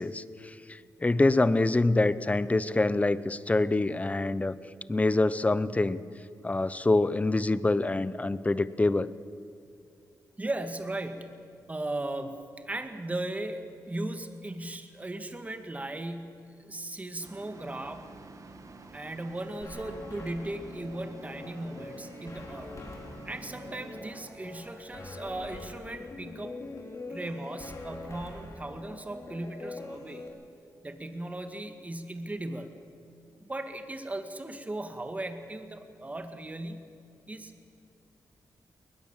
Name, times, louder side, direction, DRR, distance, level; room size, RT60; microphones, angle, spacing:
voice 1, 0.0-4.6 4.9-6.0 6.4-9.1, left 2 dB, 20° left, 16 dB, 0.8 m, -26 dB
voice 2, 10.4-18.1 18.9-22.7 23.3-26.6 27.1-30.3 30.8-32.8 33.4-37.0 37.3-37.5, right 1 dB, 20° right, 7 dB, 2.0 m, -37 dB
sound 1, 17.2-25.6, right 3 dB, 50° right, 2.1 m, -49 dB
sound 2, 19.6-30.3, left 2 dB, 50° left, 4.6 m, -44 dB
21.0 x 20.5 x 7.4 m, 2.7 s
cardioid pair, 85°, 7 cm